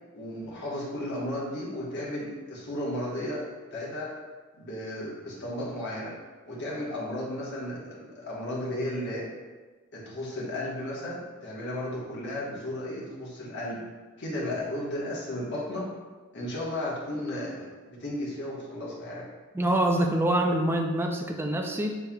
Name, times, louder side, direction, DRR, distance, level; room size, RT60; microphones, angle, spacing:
voice 1, 0.1-4.2 4.6-6.2 6.5-9.3 9.9-13.8 14.2-15.9 16.3-19.3, left 1 dB, 55° left, -5 dB, 1.2 m, -34 dB
voice 2, 19.5-22.0, right 1 dB, 10° right, 2 dB, 0.4 m, -25 dB
7.1 x 3.3 x 2.3 m, 1.3 s
head